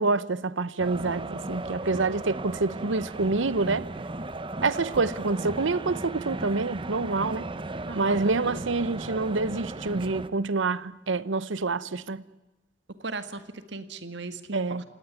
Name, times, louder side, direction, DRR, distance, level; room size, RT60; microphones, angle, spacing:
voice 1, 0.0-3.9 4.6-7.5 8.0-12.2 14.5-14.8, right 3 dB, 85° right, 0.9 m, -27 dB
sound 1, 0.8-10.3, right 2 dB, 25° right, 0.9 m, -36 dB
voice 2, 7.9-8.6 13.0-14.8, right 3 dB, 65° right, 1.9 m, -38 dB
28.5 x 18.0 x 9.3 m
head